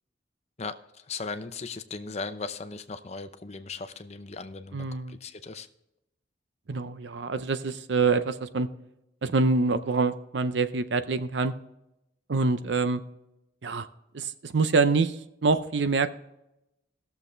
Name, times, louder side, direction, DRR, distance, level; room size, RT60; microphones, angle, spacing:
voice 1, 0.6-5.7, left 4 dB, 35° left, 9 dB, 0.7 m, -38 dB
voice 2, 4.7-5.2 6.7-8.7 9.2-11.5 12.3-13.0 13.6-13.9 14.1-16.1, right 4 dB, 70° right, 12 dB, 0.6 m, -25 dB
18.5 x 7.0 x 3.3 m, 0.88 s
head